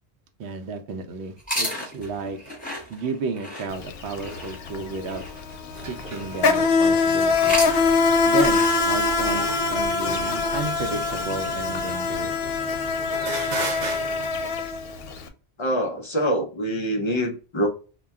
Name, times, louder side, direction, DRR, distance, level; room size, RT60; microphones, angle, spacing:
voice 1, 0.4-2.4 2.9-5.2 5.9-7.6 8.3-9.5 9.7-12.3, right 4 dB, 75° right, 7 dB, 0.8 m, -32 dB
sound 1, 1.4-6.7 7.2-11.3, equal, 10° left, 0.8 m, -35 dB
Insect, 3.7-3.9 4.2-15.2, left 4 dB, 65° left, 0.7 m, -23 dB
sound 2, 5.7-14.3, right 3 dB, 50° right, 0.6 m, -37 dB
voice 2, 15.6-17.7, equal, 50° left, 3 dB, 0.3 m, -25 dB
2.3 x 2.1 x 3.4 m, 0.36 s
omnidirectional pair, 1.1 m